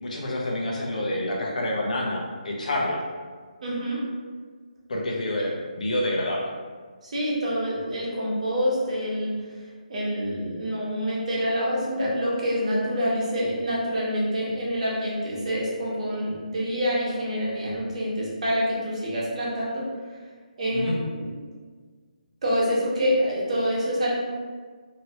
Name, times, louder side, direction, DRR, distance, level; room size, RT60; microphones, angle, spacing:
voice 1, 0.0-3.0 4.9-6.5 20.7-21.0, left 1 dB, 65° left, -2 dB, 0.8 m, -28 dB
voice 2, 3.6-4.0 5.4-5.5 7.0-9.6 9.9-19.8 20.6-21.4 22.4-24.1, equal, 55° right, -6 dB, 1.1 m, -26 dB
3.0 x 2.9 x 2.8 m, 1.5 s
hypercardioid pair, 165°, 4 cm